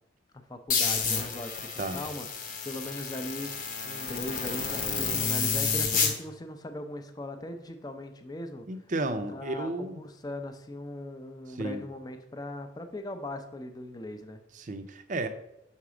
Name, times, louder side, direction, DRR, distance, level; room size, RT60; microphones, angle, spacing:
voice 1, 0.3-3.5 3.8-8.7 9.0-14.4, left 1 dB, 20° left, 6 dB, 0.5 m, -39 dB
sound 1, 0.7-6.1, left 5 dB, 45° left, 0.9 m, -30 dB
voice 2, 8.7-10.0 11.6-11.8 14.5-15.3, right 2 dB, 40° right, 9 dB, 0.5 m, -33 dB
5.9 x 4.1 x 4.9 m, 0.86 s
head